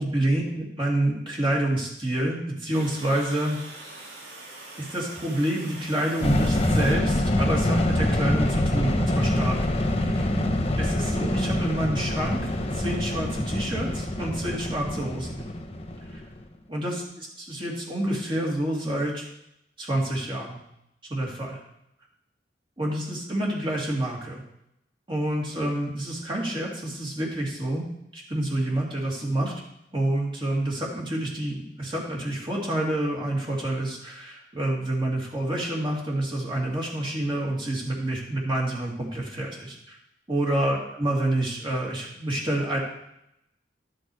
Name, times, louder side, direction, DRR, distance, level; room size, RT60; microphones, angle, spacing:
voice 1, 0.0-3.6 4.8-9.6 10.0-10.3 10.8-15.4 16.1-16.2 16.7-19.3 19.8-20.6 21.1-21.6 22.8-24.4 25.1-27.8 28.1-29.5 29.9-40.0 40.3-42.8, right 1 dB, 30° right, -3 dB, 2.5 m, -28 dB
Water, 2.7-7.8, right 2 dB, 90° right, 2.8 m, -44 dB
sound 1, 6.2-16.4, left 1 dB, 35° left, 0.9 m, -25 dB
12.5 x 6.4 x 4.8 m, 0.80 s
head